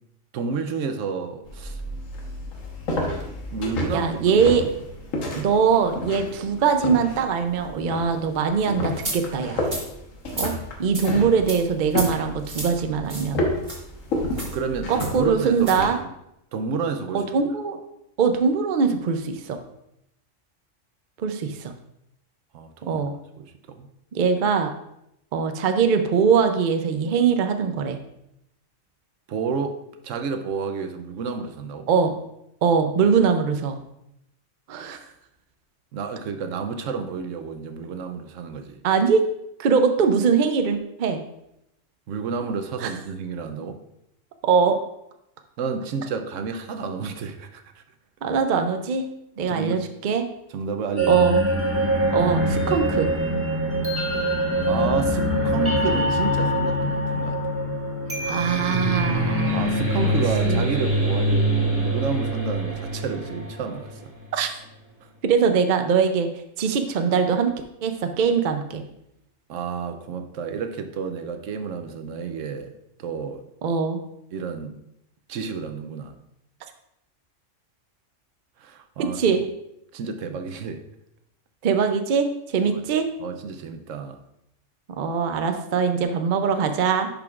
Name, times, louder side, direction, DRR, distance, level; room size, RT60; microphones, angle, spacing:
voice 1, 0.3-1.8 3.5-4.4 14.5-16.1 16.5-17.2 22.5-23.0 23.4-23.9 29.3-29.8 30.0-31.9 35.9-38.8 42.1-43.8 45.6-47.8 49.5-49.8 50.5-51.2 54.7-57.4 59.5-64.1 65.0-65.1 69.5-72.7 73.0-73.4 74.3-74.8 75.3-76.1 78.6-79.4 79.9-80.8 82.7-82.8 83.2-84.2, right 5 dB, 80° right, 7 dB, 1.0 m, -30 dB
sound 1, 1.4-16.0, left 1 dB, 90° left, 1.5 m, -31 dB
voice 2, 3.9-4.6 5.3-9.7 10.4-10.5 10.8-13.4 14.9-16.0 17.1-17.8 18.2-19.6 21.2-21.7 22.9-23.1 24.1-24.7 25.3-28.0 31.9-32.2 32.6-33.8 34.7-35.0 38.8-39.2 39.6-41.2 42.8-42.9 44.4-44.8 48.2-49.1 49.4-50.3 51.1-51.4 52.1-53.1 58.2-60.1 60.4-60.6 64.3-64.5 65.2-66.3 66.6-67.5 67.8-68.8 73.6-74.0 79.0-79.4 81.6-83.1 85.0-87.1, right 6 dB, 50° right, 7 dB, 0.6 m, -22 dB
sound 2, 9.0-9.2 9.6-9.9 10.3-10.5 10.9-11.1 11.5-11.6 11.9-12.1 12.4-12.7 13.1-13.3 13.6-13.8 14.3-14.5 15.0-15.1 15.6-15.8, right 2 dB, 25° right, 1.6 m, -31 dB
sound 3, 51.0-63.9, right 1 dB, 10° right, 1.3 m, -23 dB
10.5 x 5.2 x 2.4 m, 0.81 s
omnidirectional pair, 1.3 m